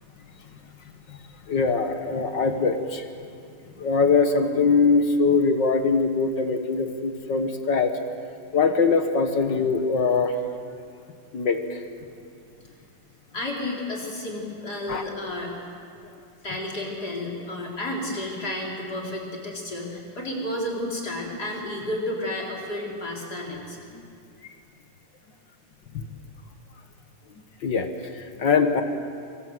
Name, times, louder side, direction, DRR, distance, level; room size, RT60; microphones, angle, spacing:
voice 1, 1.5-3.0 3.8-7.9 8.5-10.4 11.3-11.8 14.9-15.0 23.9-24.0 25.9-26.0 27.6-28.8, left 4 dB, 55° left, 6 dB, 1.3 m, -22 dB
voice 2, 13.3-15.5 16.4-23.8, left 1 dB, 30° left, -1 dB, 4.8 m, -31 dB
26.5 x 24.0 x 7.8 m, 2.4 s
omnidirectional pair, 3.7 m